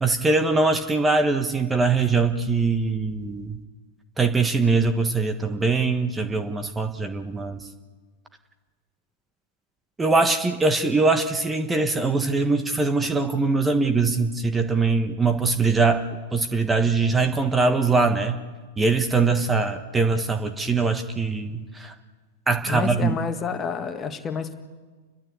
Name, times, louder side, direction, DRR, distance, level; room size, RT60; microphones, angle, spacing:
voice 1, 0.0-3.6 4.2-7.6 10.0-16.0 16.3-18.4 18.8-21.9 22.5-23.2, right 3 dB, 15° right, 7 dB, 1.4 m, -22 dB
voice 2, 22.7-24.5, left 6 dB, 25° left, 8 dB, 1.8 m, -29 dB
29.5 x 12.5 x 8.4 m, 1.4 s
hypercardioid pair, 100°, 0 cm